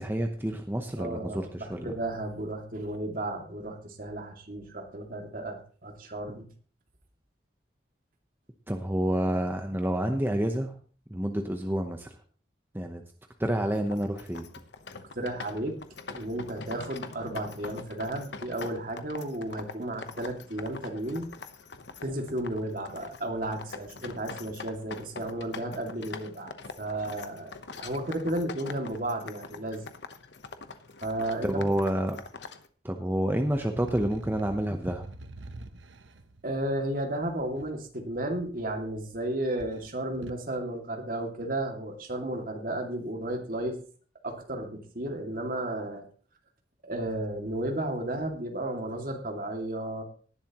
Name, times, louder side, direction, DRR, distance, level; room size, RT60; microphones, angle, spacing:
voice 1, 0.0-1.9 8.7-10.8 11.1-12.2 12.7-13.0 13.4-14.5 31.4-32.2 32.8-35.0, right 1 dB, 10° right, 4 dB, 0.9 m, -29 dB
voice 2, 1.0-6.5 15.2-15.7 16.1-21.3 22.0-27.5 27.8-29.9 31.0-31.7 36.4-43.8 44.2-46.1 46.8-50.0, right 1 dB, 50° right, 3 dB, 2.4 m, -33 dB
sound 1, 13.7-32.7, left 4 dB, 70° left, 1.0 m, -44 dB
sound 2, 33.5-37.7 38.5-39.2 39.5-40.5, right 2 dB, 90° right, 0.9 m, -46 dB
18.0 x 11.0 x 3.0 m, 0.42 s
head